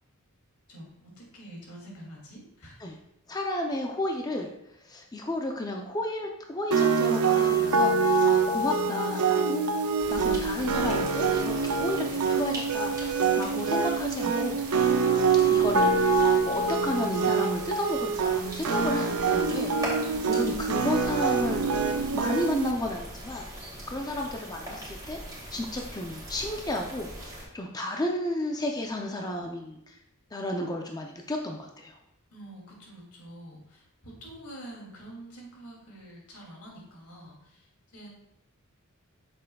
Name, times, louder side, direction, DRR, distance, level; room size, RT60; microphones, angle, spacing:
voice 1, 0.7-2.8 32.3-37.6 37.9-38.1, right 1 dB, 85° left, -2 dB, 2.7 m, -46 dB
voice 2, 3.3-4.5 4.8-9.6 10.1-14.6 15.5-23.5 23.9-25.2 25.5-29.9 30.3-31.9, left 1 dB, 20° left, 2 dB, 0.6 m, -32 dB
sound 1, 6.7-22.7, right 5 dB, 85° right, 0.6 m, -25 dB
sound 2, 10.0-27.4, right 1 dB, 20° right, 2.7 m, -41 dB
8.7 x 6.8 x 2.3 m, 0.79 s
head